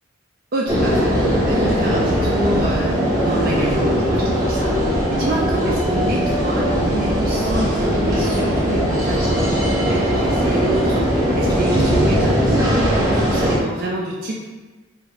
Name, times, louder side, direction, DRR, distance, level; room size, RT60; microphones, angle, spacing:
voice 1, 0.5-14.4, right 1 dB, 45° right, -3 dB, 0.3 m, -27 dB
sound 1, 0.7-13.6, equal, 20° right, 1.0 m, -19 dB
2.9 x 2.5 x 3.7 m, 1.3 s
head